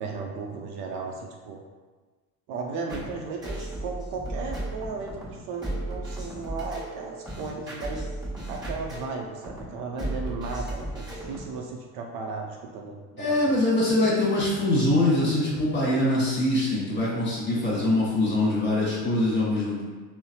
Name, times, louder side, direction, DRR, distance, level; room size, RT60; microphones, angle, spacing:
voice 1, 0.0-1.6 2.5-8.0 8.5-13.6, right 4 dB, 55° right, 1 dB, 0.5 m, -35 dB
sound 1, 2.9-11.6, right 1 dB, 10° right, 1.4 m, -35 dB
voice 2, 13.2-19.8, left 1 dB, 25° left, -6 dB, 1.3 m, -23 dB
3.8 x 2.0 x 2.7 m, 1.4 s
hypercardioid pair, 70°, 48 cm